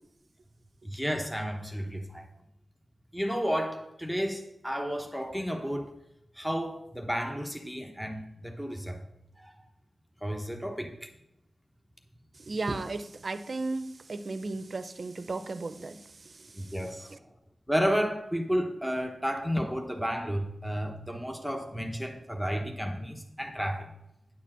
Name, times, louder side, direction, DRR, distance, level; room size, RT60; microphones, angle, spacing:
voice 1, 0.8-2.3 3.1-5.9 6.4-9.0 9.4-9.5 10.2-11.1 16.6-17.1 17.7-23.9, equal, 5° left, 3 dB, 1.0 m, -32 dB
voice 2, 12.5-16.0 16.4-16.5 17.1-17.2, right 3 dB, 50° right, 11 dB, 0.6 m, -34 dB
9.8 x 4.3 x 7.4 m, 0.87 s
wide cardioid pair, 70°, 0 cm